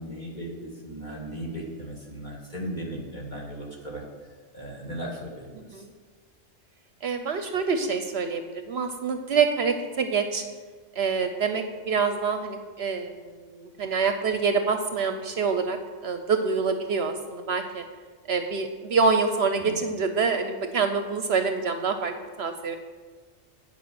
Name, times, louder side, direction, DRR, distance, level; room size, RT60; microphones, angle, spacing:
voice 1, 0.0-4.0 4.5-5.8 19.6-19.8, right 1 dB, 35° left, -3 dB, 2.1 m, -37 dB
voice 2, 7.0-10.4 11.0-17.8 18.3-22.8, right 5 dB, 65° right, 7 dB, 0.8 m, -26 dB
9.4 x 5.4 x 7.4 m, 1.5 s
omnidirectional pair, 1.3 m